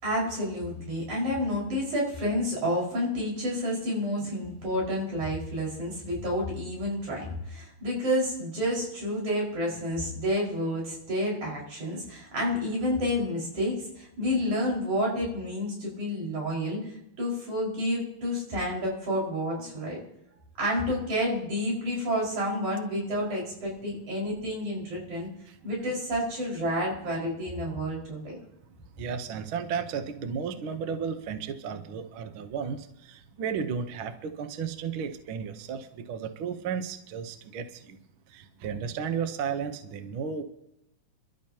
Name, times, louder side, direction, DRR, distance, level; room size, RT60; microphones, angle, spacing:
voice 1, 0.0-16.9 17.2-20.0 20.6-25.3 25.6-28.4, equal, 80° right, -3 dB, 6.7 m, -29 dB
voice 2, 29.0-38.0 38.3-40.4, right 6 dB, 60° right, 8 dB, 1.4 m, -34 dB
27.0 x 12.5 x 2.9 m, 0.84 s
omnidirectional pair, 3.3 m